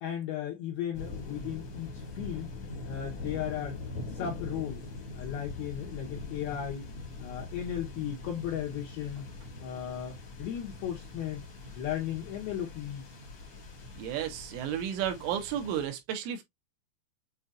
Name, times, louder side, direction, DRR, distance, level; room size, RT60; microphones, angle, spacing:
voice 1, 0.0-2.5 2.8-3.8 4.1-4.8 5.1-6.9 7.2-9.3 9.6-11.4 11.8-13.1, left 10 dB, 80° left, 2.2 m, -36 dB
sound 1, 0.9-15.9, left 3 dB, 60° left, 1.5 m, -42 dB
voice 2, 14.0-16.4, right 10 dB, 80° right, 3.4 m, -33 dB
7.8 x 2.7 x 2.4 m
omnidirectional pair, 5.7 m